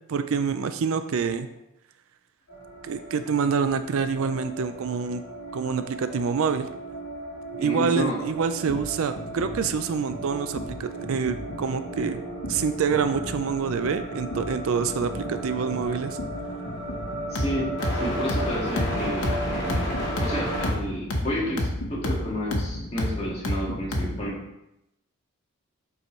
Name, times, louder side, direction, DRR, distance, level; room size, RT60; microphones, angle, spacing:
voice 1, 0.1-1.5 2.8-5.2 5.5-6.7 7.6-12.2 12.5-16.2, right 6 dB, 65° right, 10 dB, 0.4 m, -26 dB
sound 1, 2.5-20.7, right 1 dB, 50° left, 2.5 m, -34 dB
voice 2, 7.6-8.2 17.3-19.9 20.2-24.4, left 1 dB, 30° left, -5 dB, 1.8 m, -31 dB
sound 2, 8.7-24.3, left 1 dB, 80° left, 1.1 m, -32 dB
7.5 x 4.8 x 3.1 m, 0.85 s
head